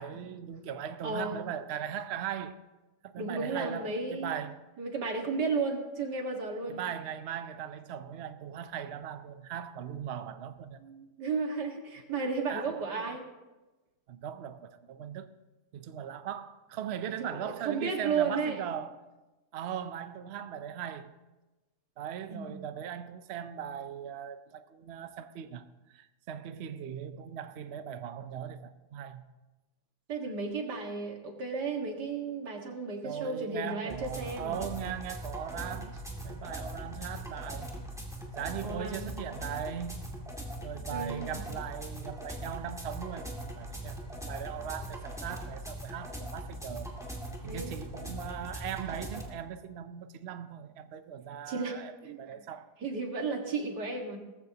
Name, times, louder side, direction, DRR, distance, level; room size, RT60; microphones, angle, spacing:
voice 1, 0.0-2.6 3.0-4.6 6.7-10.8 12.5-13.0 14.1-15.3 15.7-19.0 19.5-21.1 22.0-29.2 33.0-37.7 38.3-40.1 40.6-46.9 47.4-52.7, right 9 dB, 60° right, 0.7 m, -39 dB
voice 2, 1.0-1.4 3.2-4.3 4.8-6.8 10.8-13.3 17.2-18.6 22.3-22.5 30.1-34.6 38.6-39.1 40.9-41.4 47.5-47.8 48.0-48.1 51.5-51.8 52.0-52.4 52.8-54.2, right 4 dB, 75° right, 2.4 m, -34 dB
sound 1, 33.9-49.3, right 1 dB, ahead, 2.3 m, -41 dB
18.5 x 14.5 x 2.9 m
omnidirectional pair, 1.8 m